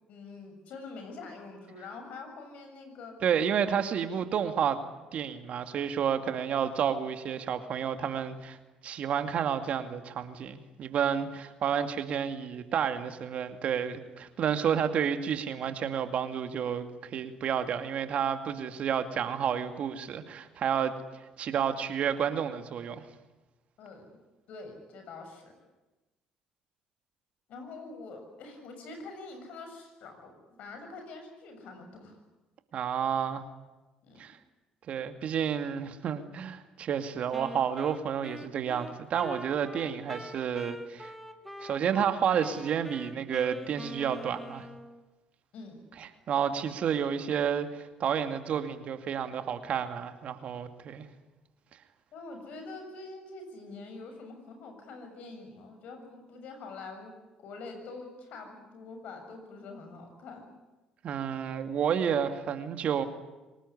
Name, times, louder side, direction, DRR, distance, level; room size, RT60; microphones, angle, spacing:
voice 1, 0.1-3.2 23.8-24.2 24.5-25.5 27.5-32.2 34.0-34.3 45.5-45.8 52.1-60.5, left 3 dB, 65° left, 5 dB, 7.2 m, -45 dB
voice 2, 3.2-4.8 5.1-8.6 8.8-23.0 32.7-33.4 34.2-34.4 34.9-41.1 41.6-44.7 46.0-51.0 61.0-63.0, right 8 dB, 55° right, 8 dB, 2.4 m, -30 dB
Wind instrument woodwind instrument, 37.3-42.1 42.4-45.0, equal, ahead, 2.3 m, -44 dB
25.0 x 19.5 x 10.0 m, 1.1 s
hypercardioid pair, 60°, 3 cm